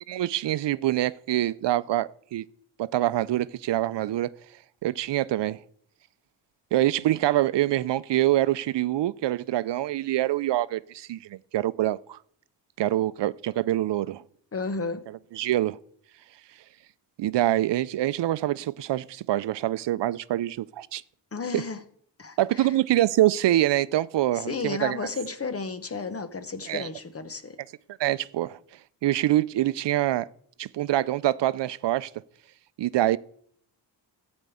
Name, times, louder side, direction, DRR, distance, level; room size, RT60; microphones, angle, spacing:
voice 1, 0.1-2.4 2.8-4.3 4.8-5.6 6.7-12.2 12.8-14.2 15.3-15.8 17.2-21.0 21.5-21.6 22.4-25.0 26.7-26.9 28.0-28.6 29.0-30.3 30.6-32.1 32.8-33.2, right 14 dB, 75° right, 0.5 m, -25 dB
voice 2, 14.5-15.1 21.3-21.8 22.2-22.7 24.3-27.6, left 4 dB, 35° left, 0.9 m, -33 dB
14.5 x 5.3 x 8.4 m
wide cardioid pair, 155°, 42 cm